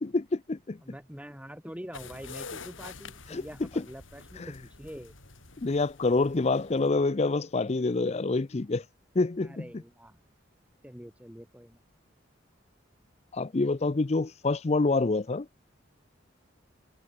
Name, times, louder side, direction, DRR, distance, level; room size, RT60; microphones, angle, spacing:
voice 1, 0.0-0.8 3.3-3.8 4.4-4.5 5.6-8.8 9.1-9.7 13.3-15.5, left 3 dB, 35° left, 0.5 m, -27 dB
voice 2, 0.8-5.1 9.4-10.2 10.8-11.8, equal, 5° right, 5.4 m, -45 dB
sound 1, 1.9-6.9, left 4 dB, 80° left, 4.7 m, -47 dB
head